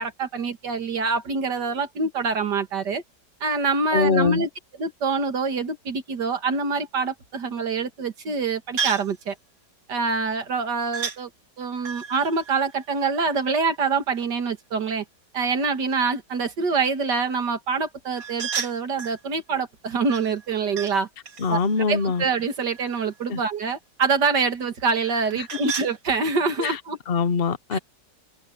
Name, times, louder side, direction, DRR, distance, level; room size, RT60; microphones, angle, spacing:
voice 1, 0.0-3.0 3.4-4.5 4.8-9.3 9.9-11.3 11.6-15.0 15.3-21.1 21.5-21.6 21.9-27.0 27.7-27.8, right 4 dB, 70° right, 2.6 m, -25 dB
voice 2, 3.9-4.4 21.4-22.2 23.3-23.4 25.3-25.5 26.6-26.8 27.1-27.8, left 5 dB, 40° left, 0.9 m, -23 dB
sound 1, 8.8-9.2 10.9-11.2 11.8-13.6 18.2-19.2 20.1-21.0 21.3-23.2 25.0-25.9, right 6 dB, 55° right, 2.3 m, -33 dB
open air
omnidirectional pair, 1.9 m